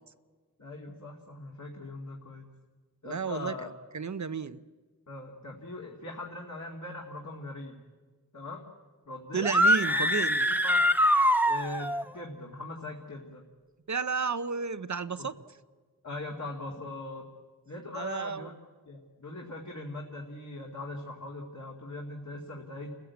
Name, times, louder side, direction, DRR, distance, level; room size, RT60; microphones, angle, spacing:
voice 1, 0.6-2.5 3.0-3.7 5.1-7.8 8.3-8.6 9.1-9.5 9.8-10.1 10.5-10.8 11.4-13.4 15.2-15.3 16.0-17.3 17.7-18.5 18.9-22.9, left 2 dB, 50° left, -1 dB, 2.4 m, -41 dB
voice 2, 3.0-3.6 3.9-4.6 9.3-10.4 13.9-15.3 17.9-18.5, right 5 dB, 50° right, 13 dB, 0.7 m, -32 dB
sound 1, 9.4-12.0, equal, 5° right, 0.9 m, -24 dB
29.5 x 15.5 x 8.3 m, 1.4 s
wide cardioid pair, 80°, 37 cm